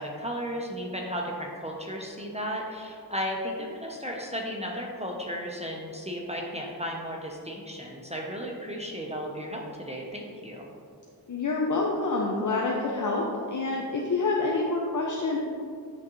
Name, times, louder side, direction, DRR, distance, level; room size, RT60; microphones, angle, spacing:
voice 1, 0.0-10.7, equal, 15° right, -1 dB, 0.8 m, -34 dB
voice 2, 11.3-15.4, left 3 dB, 50° left, -2 dB, 0.7 m, -27 dB
10.0 x 3.7 x 3.1 m, 2.3 s
wide cardioid pair, 70°, 40 cm